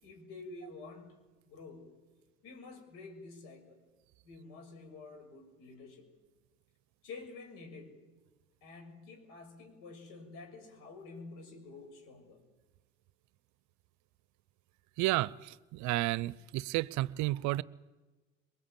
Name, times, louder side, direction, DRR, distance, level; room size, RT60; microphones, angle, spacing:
voice 1, 0.0-1.2 1.4-1.9 2.4-3.8 4.2-6.1 7.0-8.0 8.6-12.4, left 3 dB, 70° left, 4 dB, 6.3 m, -49 dB
voice 2, 15.0-17.6, right 18 dB, 55° right, 21 dB, 0.7 m, -32 dB
22.5 x 21.5 x 8.9 m, 1.2 s
hypercardioid pair, 80°, 34 cm